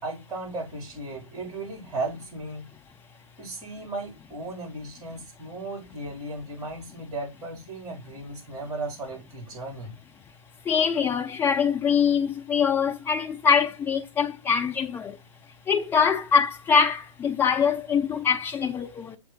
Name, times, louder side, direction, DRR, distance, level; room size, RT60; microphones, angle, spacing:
voice 1, 0.0-2.7 3.4-9.9, right 2 dB, 20° right, 3.7 m, -36 dB
voice 2, 10.6-15.2 15.7-19.2, left 6 dB, 10° left, 0.5 m, -23 dB
7.1 x 3.5 x 3.9 m
hypercardioid pair, 130°, 19 cm